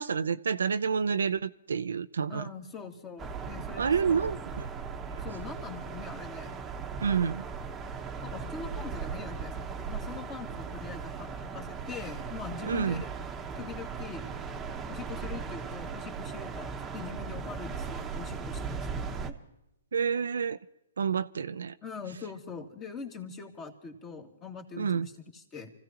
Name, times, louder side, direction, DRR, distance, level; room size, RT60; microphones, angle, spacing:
voice 1, 0.0-2.5 3.8-4.6 7.0-7.4 12.6-13.0 19.9-20.6 21.0-21.7 24.8-25.1, right 6 dB, 80° right, 0.5 m, -29 dB
voice 2, 2.3-4.2 5.2-6.5 8.2-13.1 13.6-14.3 14.9-19.4 21.8-25.7, left 5 dB, 25° left, 2.1 m, -43 dB
sound 1, 3.2-19.3, right 5 dB, 15° right, 1.2 m, -38 dB
29.0 x 15.5 x 2.9 m
hypercardioid pair, 140°, 0 cm